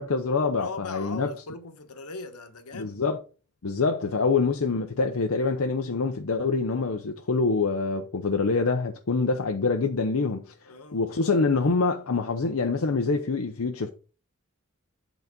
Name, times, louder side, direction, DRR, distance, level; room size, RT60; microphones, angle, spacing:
voice 1, 0.0-1.3 2.7-3.2 3.6-10.4 10.9-13.9, left 4 dB, 65° left, 0.7 m, -25 dB
voice 2, 0.6-3.0 10.7-11.1, left 3 dB, 90° left, 1.2 m, -39 dB
8.3 x 4.0 x 5.2 m
head